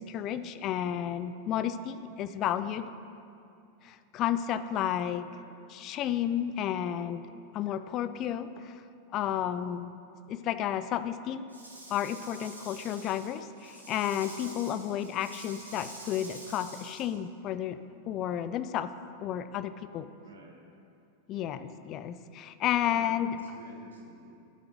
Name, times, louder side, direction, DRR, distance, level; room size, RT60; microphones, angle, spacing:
voice 1, 0.0-2.9 3.8-5.3 5.7-7.2 7.5-8.8 9.1-10.0 10.3-11.4 11.9-17.8 18.1-18.9 19.2-20.1 21.3-23.4, left 10 dB, 35° left, 12 dB, 0.4 m, -32 dB
voice 2, 5.2-5.5 6.7-7.1 20.2-20.6 21.3-22.4 22.8-24.3, right 3 dB, 65° right, 0 dB, 1.1 m, -52 dB
Rattle / Rattle (instrument), 11.5-17.0, right 1 dB, 85° right, 2.0 m, -48 dB
14.0 x 8.6 x 3.1 m, 2.6 s
figure-of-eight pair, 90°, 0 cm